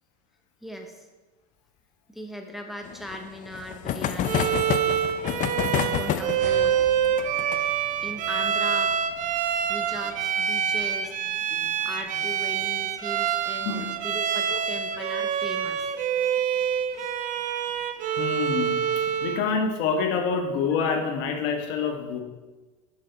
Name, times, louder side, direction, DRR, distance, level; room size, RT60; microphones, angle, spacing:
voice 1, 0.6-1.1 2.1-5.2 5.7-6.8 8.0-8.9 9.7-11.1 11.8-15.9 17.0-17.2, equal, ahead, 3 dB, 0.7 m, -38 dB
sound 1, 2.8-12.0 12.3-12.4 12.6-12.7 13.0-13.1 14.5-14.8 15.4-15.9, left 10 dB, 40° left, 0.5 m, -31 dB
Bowed string instrument, 4.2-19.5, right 8 dB, 40° right, 0.6 m, -26 dB
sound 2, 6.4-11.3, right 2 dB, 60° right, 2.4 m, -47 dB
voice 2, 13.6-14.0 18.2-22.2, left 5 dB, 60° left, 3 dB, 1.3 m, -27 dB
6.5 x 5.9 x 4.4 m, 1.2 s
supercardioid pair, 100°, 20 cm